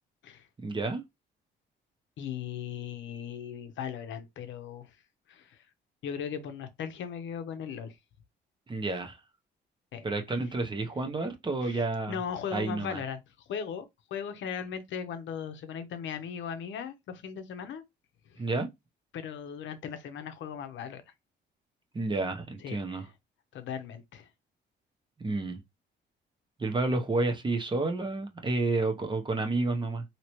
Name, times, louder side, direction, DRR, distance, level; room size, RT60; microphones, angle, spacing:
voice 1, 0.6-1.0 8.7-9.2 10.0-12.2 12.5-13.0 18.4-18.7 21.9-23.1 25.2-25.6 26.6-30.0, right 2 dB, 25° right, 0.8 m, -30 dB
voice 2, 2.2-4.9 5.3-5.6 6.0-8.0 9.9-10.1 11.6-13.2 13.5-17.8 19.1-21.0 22.6-23.0 23.5-24.3, left 7 dB, 70° left, 0.7 m, -38 dB
3.0 x 2.8 x 3.0 m
cardioid pair, 90°, 20 cm